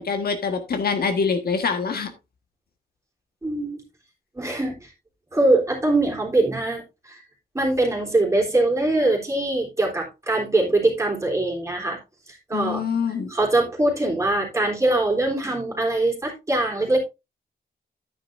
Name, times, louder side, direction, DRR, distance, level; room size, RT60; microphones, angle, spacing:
voice 1, 0.0-2.1 12.5-13.3, left 5 dB, 65° left, 6 dB, 1.6 m, -25 dB
voice 2, 3.4-3.8 4.4-4.9 5.3-7.2 7.5-12.0 12.3-12.8 13.3-17.0, right 2 dB, 15° right, -1 dB, 3.6 m, -22 dB
10.5 x 9.2 x 2.6 m, 0.25 s
wide cardioid pair, 120°, 17 cm